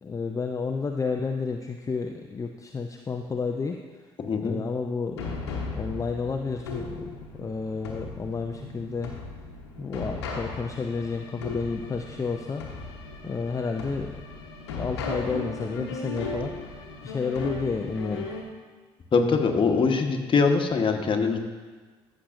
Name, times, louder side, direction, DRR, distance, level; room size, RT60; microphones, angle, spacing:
voice 1, 0.0-3.8 4.4-9.1 9.8-12.6 13.2-14.2 14.8-18.3, left 4 dB, 25° left, 4 dB, 0.5 m, -31 dB
voice 2, 4.2-4.6 19.1-21.4, left 4 dB, 40° left, 3 dB, 1.1 m, -23 dB
sound 1, 5.2-18.4, left 3 dB, 85° left, 1.0 m, -36 dB
14.0 x 6.5 x 2.6 m, 1.4 s
hypercardioid pair, 50°, 13 cm